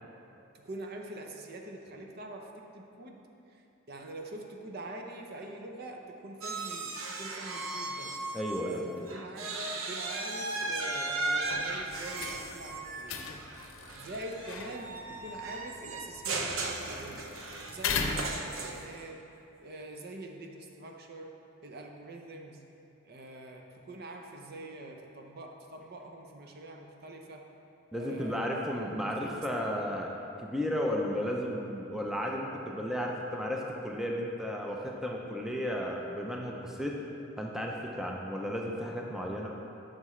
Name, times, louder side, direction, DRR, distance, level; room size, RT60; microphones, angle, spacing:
voice 1, 0.5-8.2 8.6-13.2 13.9-17.3 17.7-19.2 19.6-21.4 21.6-22.6 23.0-27.5 27.9-29.9, right 1 dB, 50° right, 2 dB, 0.7 m, -44 dB
sound 1, 6.4-8.8 9.1-19.0, right 3 dB, 85° right, 0.7 m, -36 dB
voice 2, 8.3-9.1 27.9-30.1 30.4-37.0 37.4-39.5, equal, ahead, -1 dB, 0.5 m, -34 dB
sound 2, 11.4-18.9, left 4 dB, 90° left, 0.6 m, -39 dB
9.4 x 6.6 x 3.1 m, 2.8 s
head